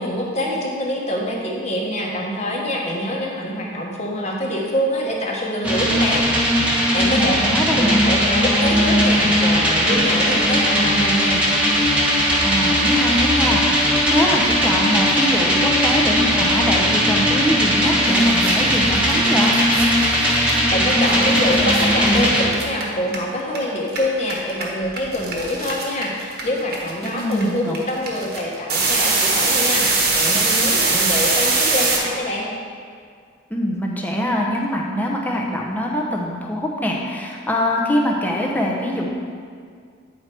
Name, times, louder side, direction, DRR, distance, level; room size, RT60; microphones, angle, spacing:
voice 1, 0.0-6.2 6.9-7.4 7.7-11.4 20.7-32.5, left 1 dB, 35° left, -2 dB, 1.2 m, -25 dB
sound 1, 5.6-22.5, equal, 5° right, 1.2 m, -18 dB
voice 2, 6.9-8.0 12.4-19.5 27.0-27.7 33.5-39.1, equal, 10° left, -2 dB, 0.8 m, -23 dB
sound 2, 17.8-17.9 18.1-23.6 23.8-32.0, right 3 dB, 55° right, 1.3 m, -22 dB
9.5 x 4.6 x 4.5 m, 2.1 s
head